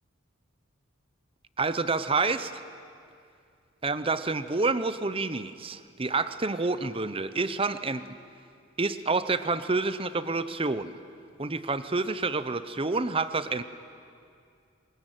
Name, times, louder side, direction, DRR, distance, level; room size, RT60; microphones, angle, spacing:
voice 1, 1.6-2.5 3.8-8.0 8.8-10.9 11.4-13.6, right 3 dB, 25° right, 13 dB, 0.8 m, -28 dB
23.5 x 21.0 x 9.2 m, 2.4 s
head